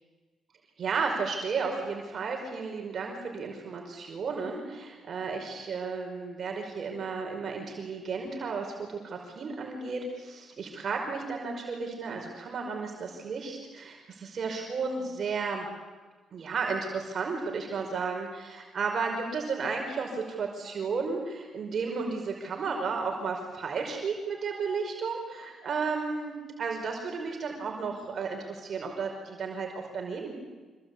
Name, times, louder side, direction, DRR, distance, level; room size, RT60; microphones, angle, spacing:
voice 1, 0.8-15.7 16.3-30.3, right 4 dB, 50° right, 1 dB, 5.2 m, -33 dB
26.5 x 23.5 x 8.6 m, 1.3 s
cardioid pair, 90°, 0 cm